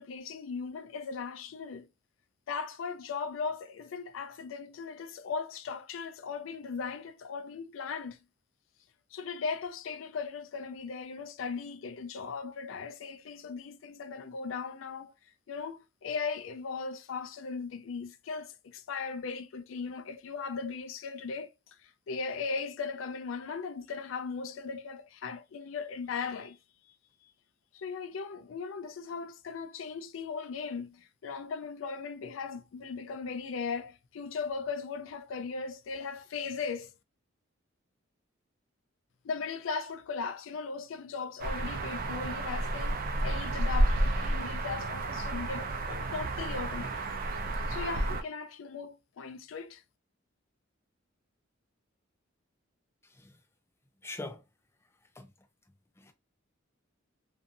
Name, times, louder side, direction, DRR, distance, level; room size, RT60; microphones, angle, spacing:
voice 1, 0.0-1.8 2.5-8.2 9.1-15.1 15.5-21.5 21.8-26.6 27.7-36.9 39.2-47.1 47.7-49.8, left 5 dB, 75° left, 0.4 m, -38 dB
sound 1, 41.4-48.2, right 1 dB, 50° right, 0.5 m, -31 dB
voice 2, 54.0-54.4 55.2-55.3 56.0-56.1, left 2 dB, 15° left, 0.5 m, -42 dB
2.6 x 2.5 x 2.5 m
head